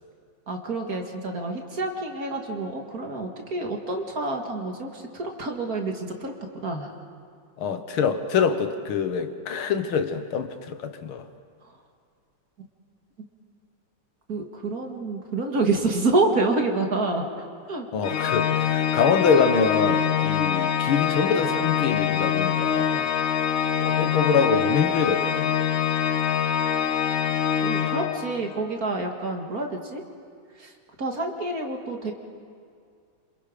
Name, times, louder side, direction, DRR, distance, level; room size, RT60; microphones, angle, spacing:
voice 1, 0.5-6.3 6.6-6.9 11.6-11.7 12.6-12.7 14.3-17.9 27.6-30.0 30.6-32.1, right 2 dB, 45° right, 2 dB, 2.3 m, -28 dB
voice 2, 7.6-11.3 17.9-23.1 23.8-25.5, left 6 dB, 75° left, 8 dB, 2.0 m, -25 dB
Organ, 18.0-28.6, left 8 dB, 55° left, 1.0 m, -24 dB
27.5 x 27.5 x 5.1 m, 2.2 s
omnidirectional pair, 2.3 m